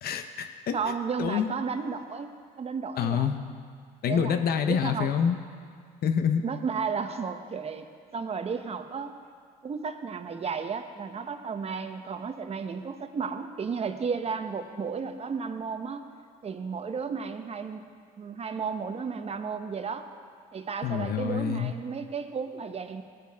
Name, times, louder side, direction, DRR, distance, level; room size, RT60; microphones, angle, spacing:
voice 1, 0.0-0.8 1.2-1.5 3.0-3.4 4.0-5.4 6.0-6.4 20.8-21.7, left 7 dB, 55° left, 7 dB, 1.0 m, -26 dB
voice 2, 0.7-3.3 4.1-5.1 6.4-9.1 9.6-16.1 16.4-17.8 18.2-20.0 20.5-23.0, right 5 dB, 30° right, 8 dB, 1.0 m, -33 dB
19.0 x 9.3 x 3.6 m, 2.2 s
supercardioid pair, 80°, 19 cm